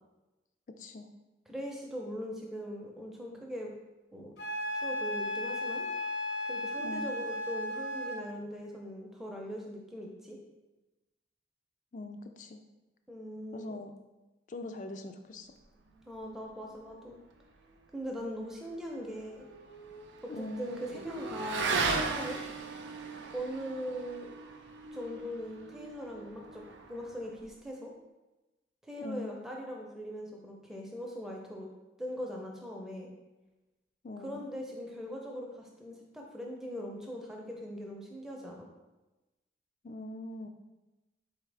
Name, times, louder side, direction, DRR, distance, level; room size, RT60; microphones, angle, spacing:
voice 1, 0.8-1.1 6.8-7.1 11.9-12.6 13.5-13.9 14.5-15.5 20.3-20.8 29.0-29.4 34.0-34.5 39.8-40.5, left 2 dB, 45° left, 6 dB, 0.3 m, -42 dB
voice 2, 1.5-3.7 4.1-4.3 4.7-5.9 6.5-10.4 13.1-13.8 16.1-17.2 17.9-19.4 20.2-20.3 20.6-22.4 23.3-24.3 24.9-26.6 26.9-27.9 28.8-31.7 32.0-33.1 34.2-38.7, equal, ahead, -1 dB, 0.6 m, -40 dB
Wind instrument woodwind instrument, 4.4-8.3, left 1 dB, 75° left, 0.7 m, -35 dB
Motorcycle / Accelerating revving vroom, 18.7-27.5, right 4 dB, 85° right, 0.5 m, -37 dB
4.4 x 3.5 x 3.3 m, 1.1 s
head